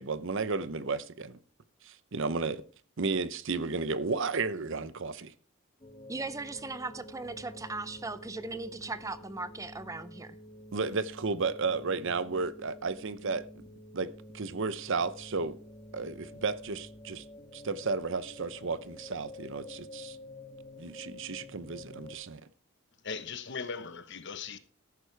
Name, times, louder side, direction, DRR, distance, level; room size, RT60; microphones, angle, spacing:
voice 1, 0.0-1.4 1.8-2.6 3.0-5.3 10.7-13.6 13.9-15.6 15.9-17.2 17.5-20.2 20.8-22.4, right 4 dB, 60° right, 0.8 m, -33 dB
sound 1, 5.8-22.1, left 1 dB, 20° left, 1.4 m, -49 dB
voice 2, 6.1-10.4, right 3 dB, 15° right, 0.5 m, -38 dB
voice 3, 23.0-24.6, left 5 dB, 55° left, 1.1 m, -38 dB
14.0 x 11.0 x 3.4 m
head